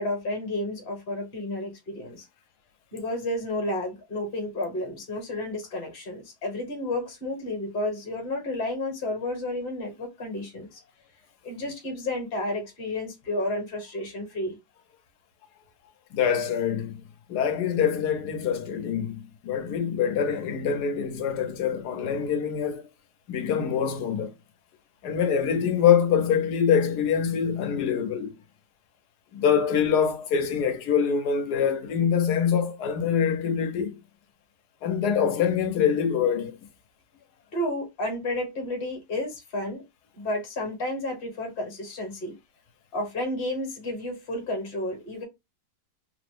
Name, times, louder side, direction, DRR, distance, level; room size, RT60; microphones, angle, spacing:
voice 1, 0.0-2.3 2.9-10.8 11.4-14.6 37.5-39.8 40.2-42.3 42.9-45.2, left 1 dB, 40° left, 1.2 m, -31 dB
voice 2, 16.1-17.0 17.3-22.9 23.3-24.3 25.0-28.3 29.3-34.0 34.8-36.6, left 7 dB, 85° left, 1.2 m, -24 dB
3.2 x 2.0 x 3.2 m
omnidirectional pair, 1.7 m